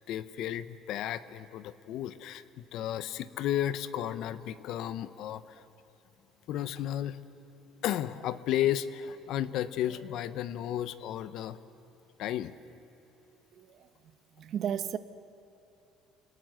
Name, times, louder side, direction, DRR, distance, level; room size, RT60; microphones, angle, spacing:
voice 1, 0.1-5.6 6.5-7.2 7.7-11.6 12.2-12.5, left 11 dB, 65° left, 14 dB, 0.9 m, -33 dB
voice 2, 13.5-15.0, right 9 dB, 50° right, 13 dB, 1.0 m, -36 dB
28.0 x 19.0 x 7.9 m, 3.0 s
cardioid pair, 125°, 0 cm